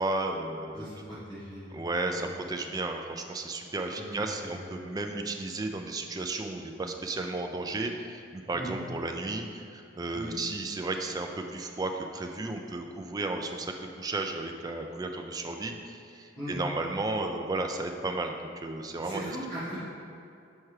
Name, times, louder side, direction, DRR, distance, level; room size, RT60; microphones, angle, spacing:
voice 1, 0.0-0.9 1.7-18.4 18.6-19.3, right 2 dB, 20° right, 4 dB, 0.3 m, -33 dB
voice 2, 0.7-1.8 2.1-2.3 4.0-4.5 8.5-8.8 10.1-10.3 16.3-16.5 19.0-19.8, right 1 dB, 20° left, -12 dB, 1.3 m, -39 dB
7.3 x 4.5 x 3.2 m, 2.5 s
head